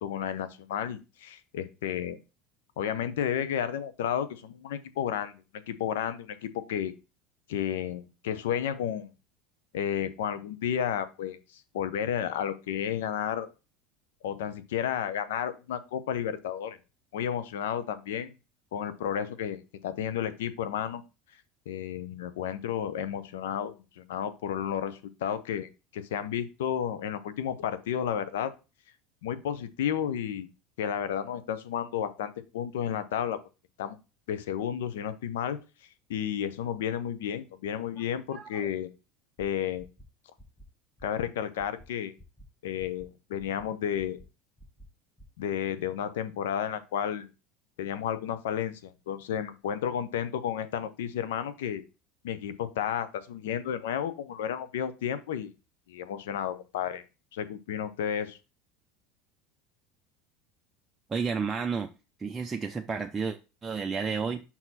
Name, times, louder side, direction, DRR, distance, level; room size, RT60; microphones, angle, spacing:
voice 1, 0.0-2.2 2.8-6.9 7.5-9.1 9.7-13.5 14.2-16.8 17.1-18.3 18.7-21.0 21.7-28.5 29.2-30.5 30.8-33.4 33.8-34.0 34.3-35.6 36.1-38.9 39.4-39.9 41.0-42.1 42.6-44.2 45.4-47.3 47.8-51.8 52.2-55.5 55.9-57.0 57.3-58.4, left 9 dB, 80° left, 0.8 m, -32 dB
sound 1, 39.4-39.5 39.8-40.1 40.4-40.7 41.0-41.3 41.6-41.9 42.2-42.5 42.8-43.1 43.4-43.7 44.0-44.3 44.6-44.9 45.2-45.4, right 1 dB, 5° left, 1.3 m, -51 dB
voice 2, 61.1-61.9 62.2-64.4, right 5 dB, 20° right, 0.6 m, -31 dB
5.6 x 4.6 x 4.1 m
hypercardioid pair, 90°, 0 cm